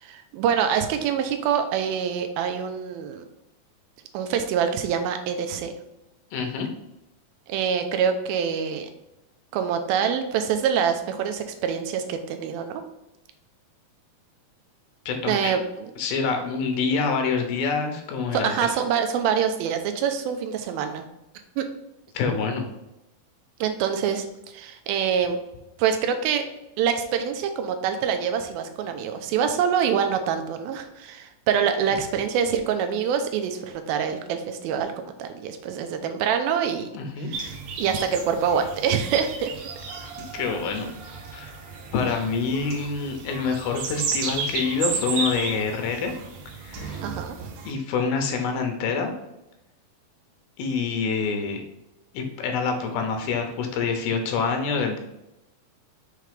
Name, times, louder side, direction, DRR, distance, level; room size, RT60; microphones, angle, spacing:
voice 1, 0.0-3.2 4.1-5.7 7.5-8.9 9.5-12.8 15.3-15.6 18.3-21.0 21.6-21.7 23.6-24.3 24.5-25.4 25.8-26.5 26.8-36.9 37.3-39.5 47.0-47.4, right 7 dB, 90° right, 7 dB, 2.5 m, -25 dB
voice 2, 6.3-6.7 15.1-15.5 16.0-18.7 22.1-22.7 36.9-37.3 40.2-40.9 41.3-41.5 41.9-46.1 46.6-47.0 47.6-49.1 50.6-51.6 52.1-55.0, left 5 dB, 90° left, 5 dB, 2.8 m, -26 dB
sound 1, 37.3-47.7, right 4 dB, 75° right, 1.7 m, -33 dB
6.7 x 3.3 x 5.2 m, 0.91 s
omnidirectional pair, 4.2 m